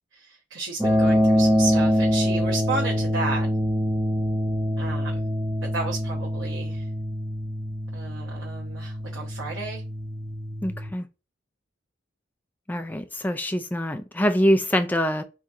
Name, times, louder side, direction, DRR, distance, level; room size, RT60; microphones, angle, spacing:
voice 1, 0.5-3.5 4.8-5.3 5.7-6.8 7.9-9.8, right 3 dB, 85° right, 0.8 m, -32 dB
sound 1, 0.8-10.9, equal, 10° right, 0.7 m, -25 dB
voice 2, 10.6-11.1 12.7-15.2, equal, 10° left, 0.3 m, -24 dB
3.4 x 2.8 x 2.6 m
head